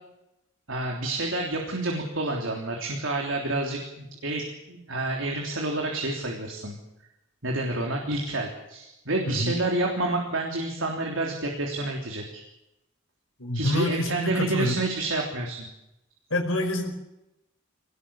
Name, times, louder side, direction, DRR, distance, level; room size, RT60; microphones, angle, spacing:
voice 1, 0.7-6.8 7.4-12.4 13.5-15.7, right 2 dB, 75° right, 1 dB, 3.4 m, -29 dB
voice 2, 9.3-9.6 13.4-14.8 16.3-16.9, left 1 dB, 90° left, 4 dB, 4.8 m, -27 dB
21.5 x 19.5 x 7.1 m, 0.90 s
head